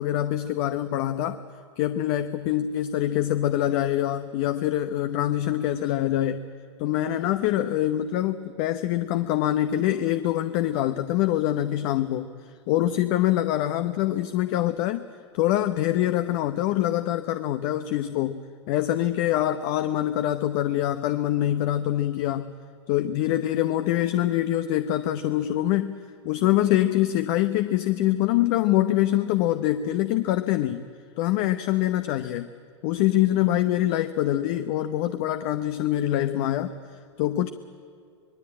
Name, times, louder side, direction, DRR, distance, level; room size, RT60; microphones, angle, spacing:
voice 1, 0.0-1.4 1.8-6.4 6.8-12.3 12.7-15.1 15.3-22.5 22.9-25.9 26.2-30.8 31.2-32.5 32.8-37.5, left 13 dB, 50° left, 11 dB, 0.9 m, -24 dB
25.5 x 19.5 x 8.8 m, 2.4 s
hypercardioid pair, 105°, 15 cm